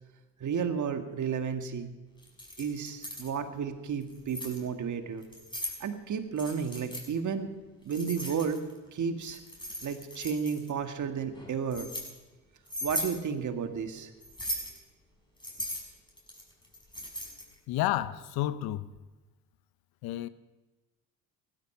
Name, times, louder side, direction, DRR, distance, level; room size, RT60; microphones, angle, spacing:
voice 1, 0.4-1.9 2.6-5.2 5.8-7.5 7.8-8.6 8.9-9.4 9.8-11.9 12.8-14.1, right 6 dB, 50° right, 1.8 m, -32 dB
Keys jangling, 2.2-3.3 4.0-4.6 5.2-5.8 6.4-7.1 7.9-8.8 9.2-10.7 11.3-12.1 12.7-13.2 14.2-14.8 15.4-17.5, equal, 10° left, 6.0 m, -38 dB
voice 2, 17.7-18.9 20.0-20.3, left 14 dB, 70° left, 0.8 m, -30 dB
16.5 x 12.5 x 5.6 m
hypercardioid pair, 65°, 38 cm